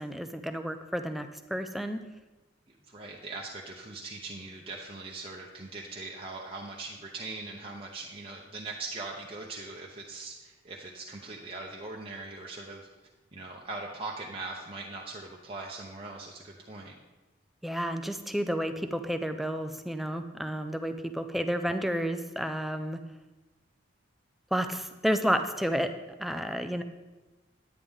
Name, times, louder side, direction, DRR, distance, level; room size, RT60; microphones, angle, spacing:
voice 1, 0.0-2.0 17.6-23.0 24.5-25.9 26.2-26.8, equal, ahead, 8 dB, 0.4 m, -31 dB
voice 2, 2.7-12.9 13.3-17.0, right 3 dB, 30° right, -3 dB, 0.8 m, -41 dB
9.9 x 9.8 x 3.6 m, 1.2 s
head